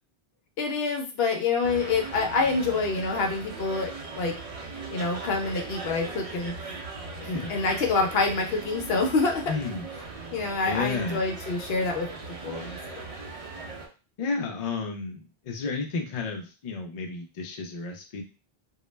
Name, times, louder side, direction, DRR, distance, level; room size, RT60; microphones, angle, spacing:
voice 1, 0.6-3.9 4.2-4.3 4.9-6.8 7.2-9.5 10.3-12.1 12.4-12.8, left 3 dB, 75° left, 2 dB, 0.8 m, -27 dB
sound 1, 1.6-13.9, right 3 dB, 50° right, 0.4 m, -39 dB
voice 2, 9.5-9.9 10.6-11.2 14.2-18.2, left 4 dB, 50° left, 2 dB, 0.5 m, -32 dB
2.3 x 2.0 x 3.1 m, 0.33 s
omnidirectional pair, 1.0 m